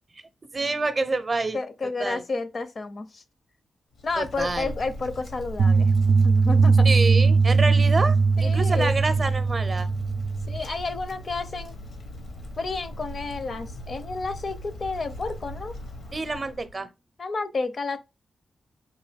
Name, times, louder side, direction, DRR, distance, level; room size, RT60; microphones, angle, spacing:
voice 1, 0.5-1.6 2.0-2.2 4.2-4.7 6.8-9.9 16.1-16.9, right 3 dB, 35° right, 0.6 m, -27 dB
voice 2, 1.5-3.2 4.0-5.9 6.2-6.9 8.4-8.9 10.5-11.8 12.6-15.8 17.2-18.0, left 3 dB, 50° left, 0.5 m, -31 dB
Wind, 3.9-16.8, left 1 dB, 85° left, 1.0 m, -39 dB
sound 1, 5.6-10.6, right 4 dB, 90° right, 0.4 m, -20 dB
3.7 x 2.6 x 3.4 m
cardioid pair, 85°, 0 cm